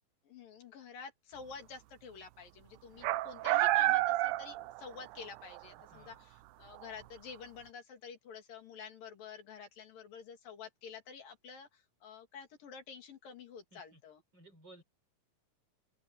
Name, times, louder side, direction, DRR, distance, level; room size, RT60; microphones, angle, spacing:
voice 1, 0.2-14.2, left 6 dB, 80° left, 4.7 m, -49 dB
sound 1, 3.0-5.2 5.5-5.6 6.8-6.9, right 17 dB, 80° right, 1.9 m, -29 dB
voice 2, 5.9-6.2 13.7-14.0 14.3-14.8, right 1 dB, 30° right, 6.0 m, -57 dB
omnidirectional pair, 3.9 m